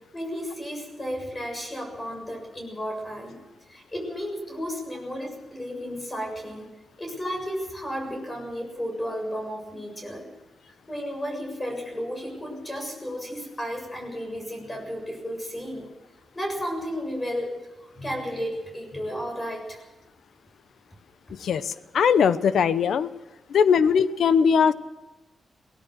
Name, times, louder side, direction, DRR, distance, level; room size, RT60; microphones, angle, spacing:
voice 1, 0.1-3.4 3.7-6.7 7.0-10.3 10.9-15.9 16.3-17.5 17.8-19.8, equal, 20° left, 2 dB, 7.2 m, -33 dB
voice 2, 21.4-23.1 23.5-24.7, left 6 dB, 80° left, 15 dB, 0.8 m, -20 dB
23.0 x 18.0 x 6.4 m, 1.1 s
cardioid pair, 100°, 0 cm